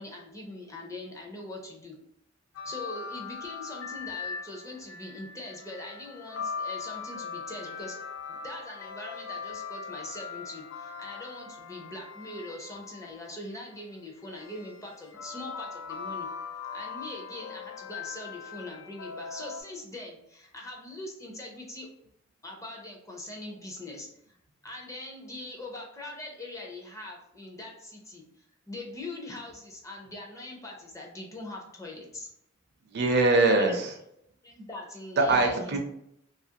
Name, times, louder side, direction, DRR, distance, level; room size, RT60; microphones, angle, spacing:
voice 1, 0.0-2.0 2.6-8.0 8.3-16.3 16.7-21.9 22.4-24.1 24.6-32.3 33.4-33.8 34.4-35.8, left 1 dB, 15° left, -1 dB, 0.5 m, -42 dB
sound 1, 2.5-13.4 14.4-19.6, left 5 dB, 85° left, 0.4 m, -40 dB
voice 2, 32.9-34.0 35.2-35.8, right 2 dB, 55° right, 4 dB, 0.5 m, -22 dB
2.7 x 2.4 x 2.8 m, 0.75 s
head